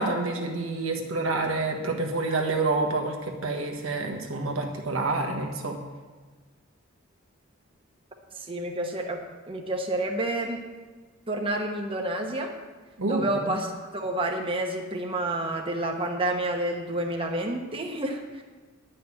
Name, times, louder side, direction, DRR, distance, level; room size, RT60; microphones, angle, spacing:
voice 1, 0.0-5.8 13.0-13.5, right 3 dB, 90° right, 2 dB, 1.5 m, -28 dB
voice 2, 8.3-10.6 11.3-12.5 13.1-13.7 13.9-18.4, right 1 dB, 25° right, 2 dB, 1.1 m, -29 dB
10.5 x 5.9 x 8.4 m, 1.4 s
head